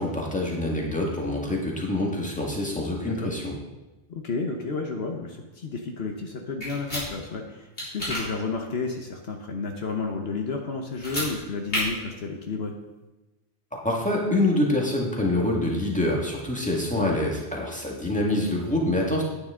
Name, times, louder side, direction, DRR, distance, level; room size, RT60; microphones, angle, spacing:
voice 1, 0.0-3.5 13.8-19.2, left 1 dB, 5° left, -2 dB, 1.9 m, -26 dB
voice 2, 4.1-12.7 16.9-17.2, left 4 dB, 65° left, 2 dB, 1.2 m, -31 dB
sound 1, 6.6-7.0 7.8-8.2 10.9-11.3 11.7-11.8, left 1 dB, 80° left, 4.3 m, -29 dB
9.6 x 9.6 x 3.8 m, 1.1 s
omnidirectional pair, 1.1 m